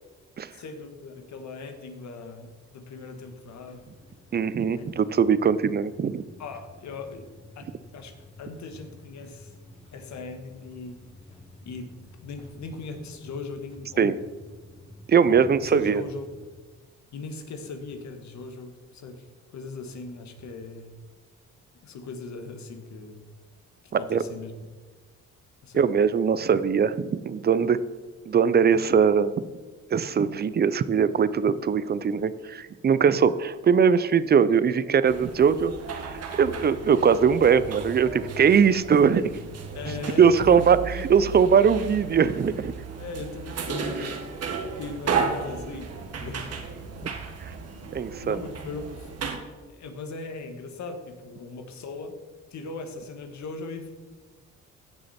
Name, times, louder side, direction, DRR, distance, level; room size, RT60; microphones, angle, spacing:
voice 1, 0.5-3.8 4.7-4.8 5.3-5.5 6.4-7.3 7.5-9.6 9.9-11.0 11.6-11.9 12.2-14.2 15.3-16.3 17.1-19.3 19.5-20.9 21.8-23.2 23.8-24.5 25.6-25.9 39.7-40.7 41.0-41.1 43.0-44.3 44.7-46.5 47.0-47.2 48.2-49.1 49.7-52.2 52.5-53.9, left 3 dB, 65° left, 6 dB, 1.5 m, -39 dB
sound 1, 3.0-16.5, left 1 dB, 20° left, 2.6 m, -50 dB
voice 2, 4.3-6.2 14.0-14.2 15.1-16.0 23.9-24.2 25.7-27.8 28.3-29.4 29.9-39.3 40.2-40.8 41.1-42.7 47.9-48.4, right 6 dB, 35° right, 16 dB, 0.5 m, -21 dB
sound 2, 35.0-49.4, right 5 dB, 55° right, 1.6 m, -34 dB
16.5 x 6.4 x 4.3 m, 1.3 s
cardioid pair, 90°, 30 cm